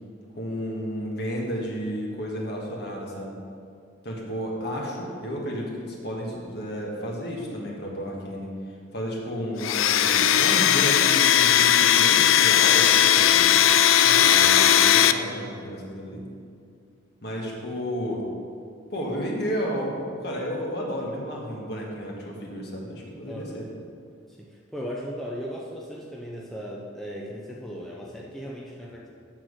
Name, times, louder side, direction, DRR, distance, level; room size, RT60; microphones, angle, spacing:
voice 1, 0.4-3.4 4.0-8.5 8.9-13.6 14.2-16.2 17.2-18.3 18.9-23.7, equal, 55° left, -2 dB, 1.7 m, -32 dB
Domestic sounds home sounds, 9.6-15.1, left 10 dB, 85° left, 0.4 m, -18 dB
voice 2, 13.9-14.6 17.4-17.6 23.3-23.6 24.4-29.1, equal, ahead, -4 dB, 0.7 m, -37 dB
7.7 x 5.9 x 6.4 m, 2.3 s
head